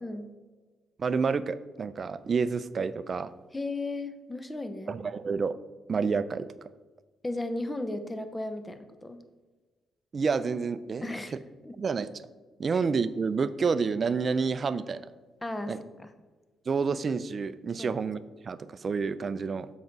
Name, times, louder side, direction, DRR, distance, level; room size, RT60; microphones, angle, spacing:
voice 1, 1.0-3.3 4.9-5.6 5.9-6.5 10.1-11.1 11.8-12.2 12.6-15.0 15.7-15.8 16.7-19.7, right 5 dB, 40° right, 14 dB, 0.4 m, -29 dB
voice 2, 3.5-4.9 7.2-9.2 11.0-11.3 11.6-11.8 12.7-12.8 15.4-16.1 17.8-18.0, left 2 dB, 15° left, 9 dB, 0.7 m, -35 dB
7.3 x 5.9 x 3.9 m, 1.3 s
cardioid pair, 90°, 0 cm